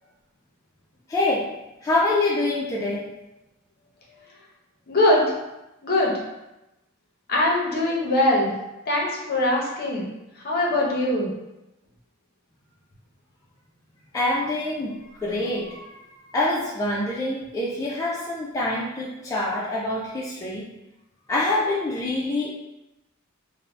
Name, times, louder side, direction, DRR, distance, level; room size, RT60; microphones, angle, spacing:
voice 1, 1.1-1.5 1.8-3.1 14.1-14.9 15.2-20.7 21.3-22.5, left 2 dB, 15° left, -6 dB, 0.3 m, -25 dB
voice 2, 4.9-5.2 5.8-6.1 7.3-8.5 8.9-10.1 10.4-11.3, left 1 dB, 45° left, -3 dB, 0.7 m, -22 dB
2.6 x 2.0 x 3.2 m, 0.95 s
head